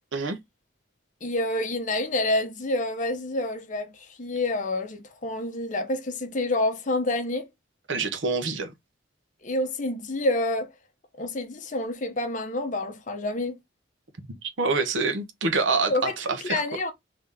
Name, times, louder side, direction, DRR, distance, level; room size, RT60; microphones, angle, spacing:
voice 1, 1.2-7.5 9.4-10.7 11.2-13.6 15.9-16.2 16.4-16.9, left 2 dB, 45° left, 0.8 m, -28 dB
voice 2, 7.9-8.7 14.6-16.6, right 4 dB, 85° right, 0.8 m, -26 dB
3.7 x 2.8 x 3.3 m
head